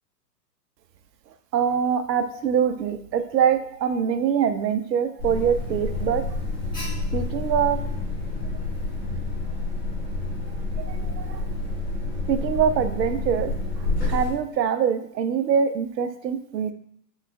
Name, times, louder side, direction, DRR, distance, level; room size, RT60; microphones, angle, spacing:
voice 1, 1.5-6.2 7.1-7.8 10.8-11.4 12.3-13.5 14.1-16.7, right 8 dB, 90° right, 10 dB, 0.5 m, -24 dB
Alarm, 5.2-14.3, left 2 dB, 10° left, 0.5 m, -28 dB
3.8 x 3.0 x 2.2 m, 0.67 s
hypercardioid pair, 130°, 49 cm